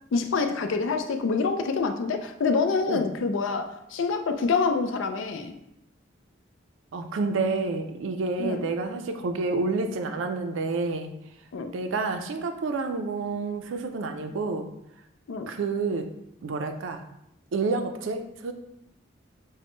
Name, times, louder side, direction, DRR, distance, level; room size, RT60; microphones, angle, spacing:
voice 1, 0.1-5.6 8.4-8.7 11.5-11.7 15.3-15.5, left 4 dB, 80° left, 7 dB, 0.4 m, -26 dB
voice 2, 6.9-11.1 11.7-14.7 15.5-16.1 16.4-17.0 17.5-18.5, right 3 dB, 80° right, 7 dB, 0.4 m, -29 dB
3.5 x 2.1 x 3.7 m, 0.82 s
head